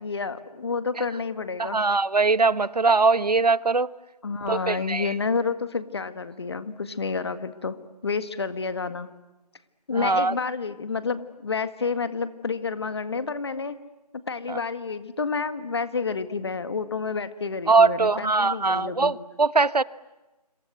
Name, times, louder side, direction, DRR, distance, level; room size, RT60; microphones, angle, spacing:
voice 1, 0.0-1.8 4.2-7.8 8.0-9.1 9.9-13.8 14.3-19.1, left 4 dB, 40° left, 1.8 m, -29 dB
voice 2, 1.6-3.9 4.5-5.1 9.9-10.3 14.5-14.6 17.7-19.8, right 4 dB, 75° right, 1.0 m, -21 dB
27.0 x 26.5 x 7.9 m
figure-of-eight pair, 165°, 21 cm